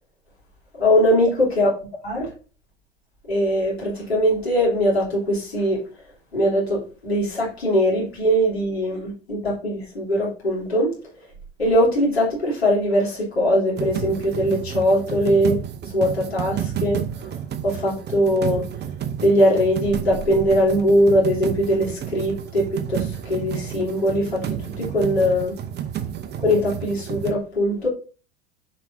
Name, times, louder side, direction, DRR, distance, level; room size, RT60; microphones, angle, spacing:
voice 1, 0.8-1.7 2.0-2.2 3.3-5.8 6.3-10.9 11.6-17.0 17.6-18.6 19.2-25.5 26.4-27.9, equal, 90° left, 3.3 m, -21 dB
sound 1, 13.8-27.3, right 9 dB, 35° right, 0.9 m, -31 dB
7.1 x 5.2 x 2.7 m
figure-of-eight pair, 75°, 31 cm